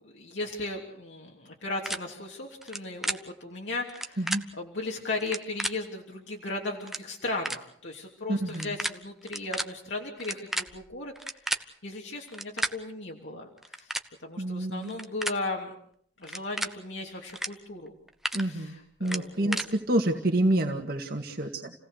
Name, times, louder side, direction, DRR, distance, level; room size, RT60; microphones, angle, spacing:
voice 1, 0.0-13.9 14.2-15.7 16.2-17.9 18.3-19.6, left 2 dB, 80° left, -1 dB, 3.1 m, -36 dB
sound 1, 1.8-2.0 2.6-2.8 3.0-3.2 3.9-4.4 5.2-5.7 6.5-6.6 6.8-7.0 7.4-7.6 8.5-8.9 9.2-9.6 10.2-11.6 12.3-12.7 13.6-14.1 14.8-15.4 16.2-16.7 17.3-17.5 17.9-18.4 19.0-19.7, right 1 dB, ahead, 0.9 m, -31 dB
voice 2, 8.3-8.7 14.4-14.9 18.3-21.7, right 1 dB, 55° right, 2 dB, 1.9 m, -28 dB
29.5 x 17.5 x 6.6 m, 0.68 s
head